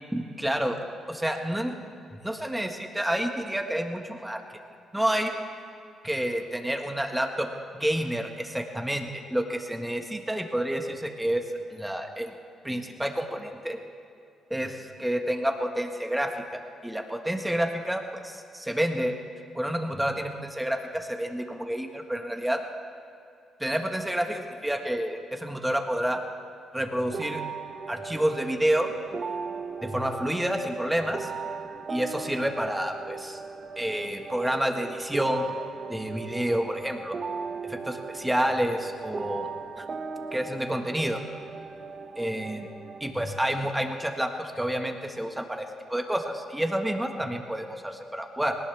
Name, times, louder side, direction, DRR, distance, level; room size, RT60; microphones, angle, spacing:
voice 1, 0.1-0.8 1.1-1.7 2.2-4.4 4.9-5.3 6.0-7.5 7.8-12.3 12.6-13.8 14.5-19.2 19.5-22.6 23.6-26.2 26.7-27.4 27.9-28.9 29.8-31.3 31.9-33.4 33.8-35.5 35.9-37.2 37.7-39.5 39.8-39.9 40.3-41.2 42.2-42.7 43.0-48.6, right 1 dB, 5° right, 4 dB, 1.7 m, -29 dB
sound 1, 27.1-43.1, right 5 dB, 40° right, 0.9 m, -38 dB
20.0 x 19.0 x 3.5 m, 2.6 s
cardioid pair, 90°, 0 cm